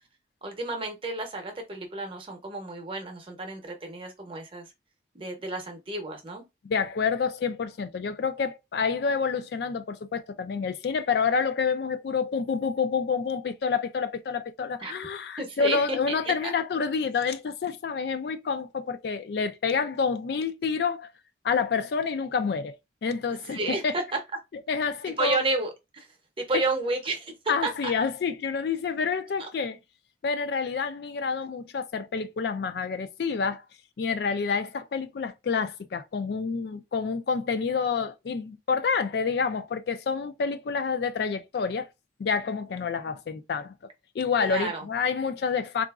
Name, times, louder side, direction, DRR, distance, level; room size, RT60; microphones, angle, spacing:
voice 1, 0.4-4.7 5.1-6.4 14.8-14.9 15.4-16.5 23.3-24.2 25.2-26.1 26.4-27.3 27.6-27.9 29.4-29.5 44.4-44.8, right 2 dB, 30° right, 0.7 m, -31 dB
voice 2, 6.6-21.1 21.4-22.8 23.0-23.9 24.7-25.4 27.5-29.8 30.2-33.6 34.0-41.9 42.2-43.7 44.1-45.8, left 5 dB, 60° left, 0.3 m, -28 dB
3.8 x 2.4 x 2.3 m
head